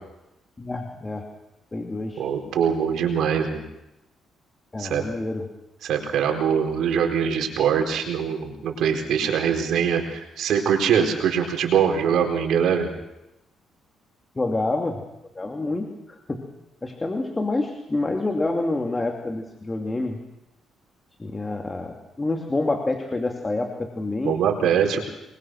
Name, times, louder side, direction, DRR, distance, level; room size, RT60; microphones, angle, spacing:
voice 1, 0.6-1.3 1.7-2.2 4.7-5.5 14.3-15.0 15.3-16.4 16.8-20.2 21.2-24.4, left 2 dB, 20° left, 3 dB, 2.7 m, -27 dB
voice 2, 2.2-3.6 4.8-5.0 5.8-12.9 24.2-25.0, right 7 dB, 75° right, 3 dB, 4.4 m, -23 dB
24.0 x 22.5 x 6.3 m, 0.91 s
cardioid pair, 90°, 0 cm